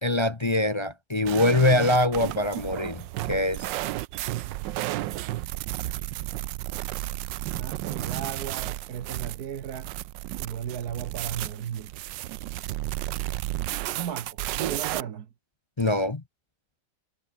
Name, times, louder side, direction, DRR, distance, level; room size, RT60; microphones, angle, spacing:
voice 1, 0.0-3.7 15.8-16.2, left 1 dB, 45° left, 0.3 m, -23 dB
sound 1, 1.3-15.0, right 16 dB, 70° right, 1.2 m, -33 dB
voice 2, 7.5-9.9 10.4-11.9 13.9-15.3, right 9 dB, 55° right, 1.5 m, -35 dB
omnidirectional pair, 2.2 m